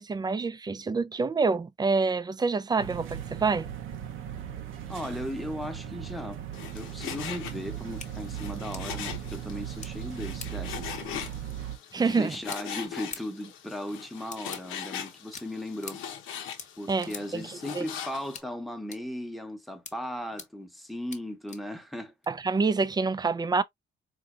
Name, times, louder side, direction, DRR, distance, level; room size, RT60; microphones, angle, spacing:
voice 1, 0.0-3.7 11.9-12.4 16.9-17.8 22.3-23.6, right 4 dB, 20° right, 0.4 m, -27 dB
sound 1, 2.8-11.8, right 10 dB, 85° right, 0.8 m, -38 dB
voice 2, 4.9-6.4 6.7-11.0 12.0-16.0 16.8-22.1, left 1 dB, ahead, 0.9 m, -37 dB
Frying (food), 6.5-18.4, left 8 dB, 90° left, 0.9 m, -41 dB
sound 2, 8.0-8.1 8.7-8.8 9.8-9.9 10.4-10.5 12.4-12.6 13.1-13.2 14.3-14.6 15.3-15.4 15.8-16.0 16.6-16.7 17.0-17.2 18.3-18.4 18.9-19.0 19.8-19.9 20.4-20.5 21.1-21.2 21.5-21.6 22.2-22.3, left 5 dB, 35° left, 0.9 m, -41 dB
4.0 x 2.7 x 2.4 m
cardioid pair, 90°, 20 cm